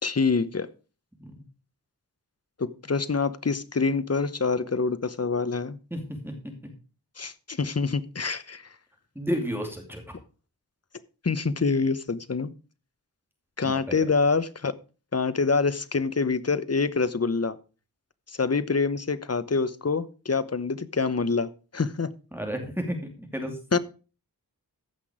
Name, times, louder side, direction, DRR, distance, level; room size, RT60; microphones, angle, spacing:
voice 1, 0.0-0.7 2.6-5.8 7.2-8.7 11.2-12.5 13.6-14.7 15.1-17.6 18.3-22.1 23.7-23.8, left 4 dB, 40° left, 14 dB, 0.9 m, -26 dB
voice 2, 5.9-6.3 6.6-6.7 9.1-10.1 13.6-14.0 22.3-23.8, equal, 5° right, 3 dB, 2.5 m, -32 dB
15.0 x 6.0 x 4.9 m, 0.35 s
wide cardioid pair, 75°, 40 cm